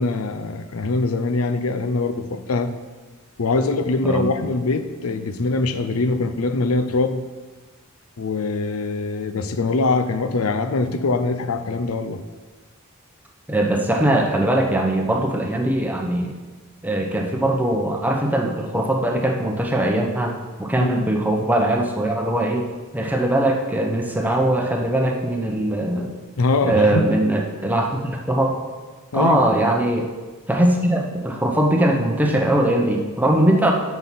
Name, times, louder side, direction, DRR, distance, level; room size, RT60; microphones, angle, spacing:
voice 1, 0.0-2.7 3.4-7.2 8.2-12.2 20.8-21.1 26.4-27.1 29.1-29.5, left 3 dB, 80° left, 10 dB, 0.6 m, -23 dB
voice 2, 13.5-16.3 16.8-22.7 22.9-26.1 26.6-28.6 29.1-30.1 30.5-33.7, right 1 dB, 10° right, 2 dB, 0.8 m, -21 dB
7.6 x 5.8 x 5.8 m, 1.3 s
head